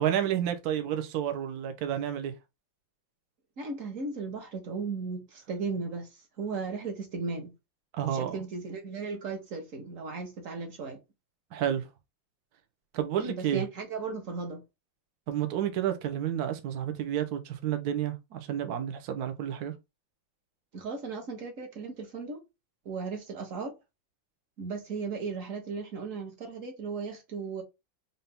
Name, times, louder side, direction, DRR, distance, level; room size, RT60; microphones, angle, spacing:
voice 1, 0.0-2.3 7.9-8.3 11.5-11.8 12.9-13.6 15.3-19.7, right 10 dB, 65° right, 1.1 m, -30 dB
voice 2, 3.6-6.1 6.4-7.5 8.1-11.0 13.2-14.6 20.7-22.4 22.8-23.7 24.6-27.6, right 4 dB, 45° right, 1.4 m, -36 dB
4.1 x 2.7 x 3.4 m
omnidirectional pair, 2.1 m